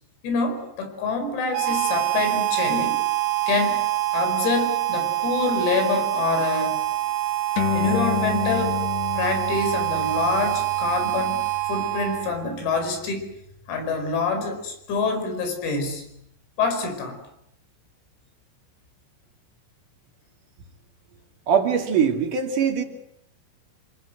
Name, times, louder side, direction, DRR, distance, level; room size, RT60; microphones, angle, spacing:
voice 1, 0.2-3.0 3.5-3.9 4.1-6.8 7.7-8.8 9.2-13.3 13.7-16.1 16.6-17.2, left 4 dB, 85° left, 7 dB, 7.6 m, -26 dB
Harmonica, 1.5-12.5, right 17 dB, 70° right, 3.9 m, -25 dB
sound 1, 7.6-14.4, left 7 dB, 65° left, 3.2 m, -32 dB
voice 2, 21.5-22.8, right 7 dB, 45° right, 4 dB, 3.3 m, -21 dB
28.0 x 24.0 x 8.0 m, 0.78 s
omnidirectional pair, 6.0 m